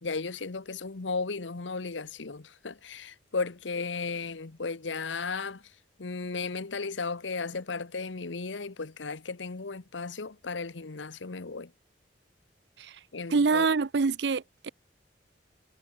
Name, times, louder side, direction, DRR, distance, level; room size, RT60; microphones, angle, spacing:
voice 1, 0.0-5.6 6.0-11.7 13.1-13.7, left 4 dB, 90° left, 1.0 m, -35 dB
voice 2, 13.3-14.7, right 4 dB, 70° right, 0.6 m, -25 dB
head